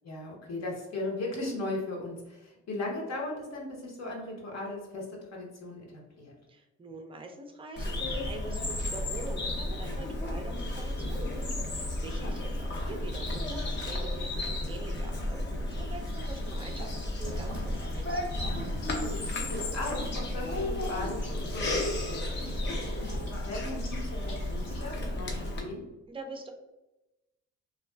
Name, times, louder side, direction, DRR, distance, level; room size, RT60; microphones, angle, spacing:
voice 1, 0.0-6.3 12.1-12.3 19.0-21.8 22.0-25.9, left 2 dB, 60° left, -1 dB, 0.9 m, -38 dB
voice 2, 6.5-18.2 26.1-26.5, right 2 dB, 20° right, 4 dB, 0.4 m, -44 dB
Bird vocalization bird call bird song, 7.8-25.6, left 1 dB, 35° left, 0.6 m, -33 dB
sound 1, 16.0-25.0, equal, 80° left, 1.1 m, -50 dB
2.4 x 2.3 x 2.2 m, 0.99 s
cardioid pair, 90°, 30 cm